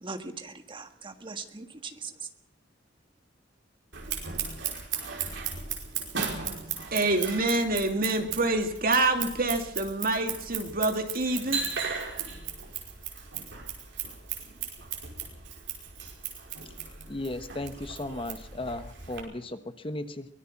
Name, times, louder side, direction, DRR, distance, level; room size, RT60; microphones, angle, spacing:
voice 1, 0.0-2.1, right 4 dB, 25° right, 1.7 m, -40 dB
Scissors, 3.9-19.2, right 7 dB, 75° right, 5.2 m, -36 dB
voice 2, 6.9-11.6, right 2 dB, 50° right, 2.6 m, -26 dB
voice 3, 17.1-20.3, left 1 dB, 30° left, 1.2 m, -36 dB
24.0 x 18.5 x 6.0 m
head